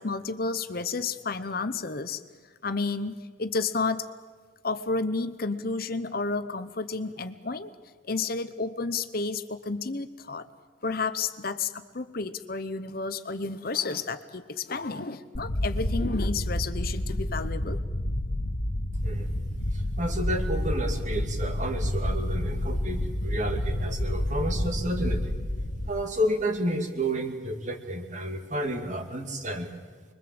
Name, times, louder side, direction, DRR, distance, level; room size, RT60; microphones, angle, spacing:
voice 1, 0.0-2.2 2.6-4.1 4.6-7.7 8.1-10.5 10.8-17.8, left 4 dB, 50° left, 11 dB, 0.9 m, -31 dB
sound 1, 15.3-25.9, left 1 dB, 90° left, 1.6 m, -29 dB
voice 2, 19.7-25.3 25.9-29.7, right 1 dB, 40° right, 5 dB, 2.4 m, -31 dB
26.0 x 22.5 x 7.8 m, 1.5 s
head